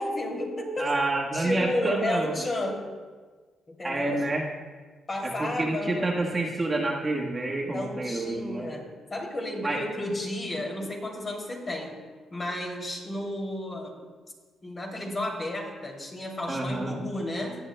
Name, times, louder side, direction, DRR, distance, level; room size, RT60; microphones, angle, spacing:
voice 1, 0.0-0.9 1.3-2.8 3.7-4.3 5.1-6.1 7.6-8.8 9.1-11.9 12.3-13.9 14.6-17.6, left 1 dB, 35° left, -1 dB, 2.7 m, -32 dB
voice 2, 0.8-2.3 3.8-4.4 5.2-8.7 9.6-9.8 16.5-17.0, right 2 dB, 25° right, -2 dB, 1.4 m, -28 dB
18.5 x 9.2 x 2.2 m, 1.4 s
cardioid pair, 90°, 0 cm